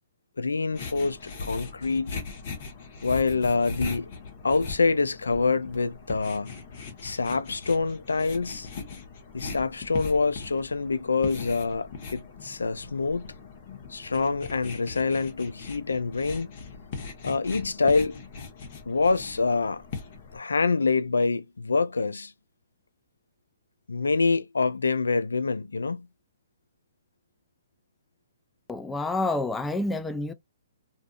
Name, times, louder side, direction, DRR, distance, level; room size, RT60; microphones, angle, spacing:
voice 1, 0.4-2.2 3.0-4.1 4.4-6.6 7.0-8.7 9.3-13.3 13.9-16.5 17.2-18.2 18.9-19.8 20.3-22.3 23.9-26.1, left 4 dB, 85° left, 0.3 m, -26 dB
sound 1, 0.7-20.4, left 4 dB, 50° left, 1.0 m, -40 dB
voice 2, 28.7-30.3, left 2 dB, 10° left, 0.4 m, -28 dB
2.5 x 2.4 x 2.3 m
hypercardioid pair, 125°, 0 cm